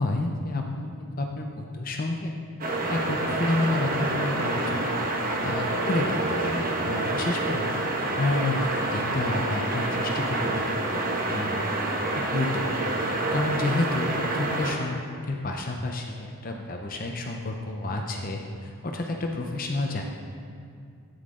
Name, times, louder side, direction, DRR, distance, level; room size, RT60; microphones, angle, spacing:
voice 1, 0.0-2.3 2.9-5.0 5.4-10.6 10.9-11.6 12.1-12.9 13.3-20.0, left 2 dB, 40° left, 2 dB, 0.7 m, -30 dB
sound 1, 2.6-14.7, right 2 dB, 40° right, 1.1 m, -28 dB
13.0 x 9.5 x 3.8 m, 2.4 s
head